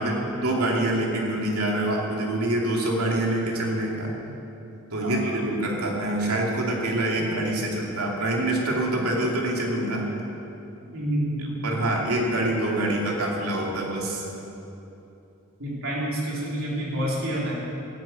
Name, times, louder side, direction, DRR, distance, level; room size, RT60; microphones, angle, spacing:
voice 1, 0.0-4.1 4.9-10.1 11.4-14.3, right 1 dB, 85° right, -1 dB, 2.6 m, -26 dB
voice 2, 10.9-11.5 15.6-17.5, right 1 dB, 65° right, -5 dB, 3.9 m, -28 dB
13.0 x 9.5 x 8.7 m, 2.9 s
head